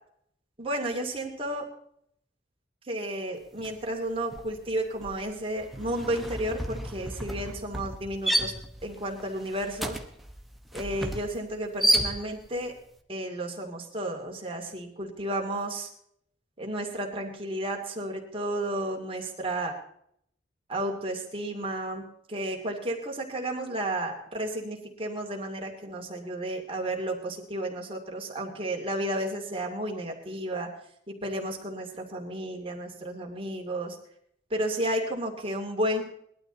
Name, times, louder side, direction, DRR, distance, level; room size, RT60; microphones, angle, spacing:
voice 1, 0.6-1.6 2.9-8.5 8.8-10.0 10.7-12.7 13.1-15.9 16.6-19.7 20.7-22.0 22.3-30.7 31.1-34.0 34.5-36.0, right 1 dB, 30° right, 1 dB, 2.5 m, -32 dB
sound 1, 3.6-3.9 4.2-12.6, right 1 dB, ahead, 1.0 m, -31 dB
19.5 x 12.0 x 3.9 m, 0.68 s
head